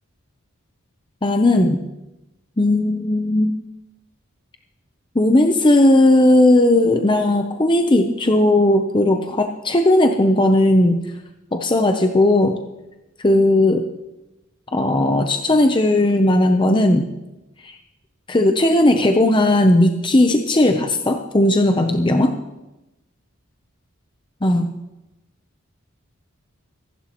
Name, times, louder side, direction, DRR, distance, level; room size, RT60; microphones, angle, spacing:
voice 1, 1.2-1.8 2.6-3.5 5.1-11.0 11.5-12.6 13.2-13.9 14.7-17.1 17.6-17.8 18.3-22.3 24.4-24.7, left 1 dB, 25° left, 5 dB, 0.7 m, -16 dB
25.5 x 11.0 x 3.0 m, 0.98 s
head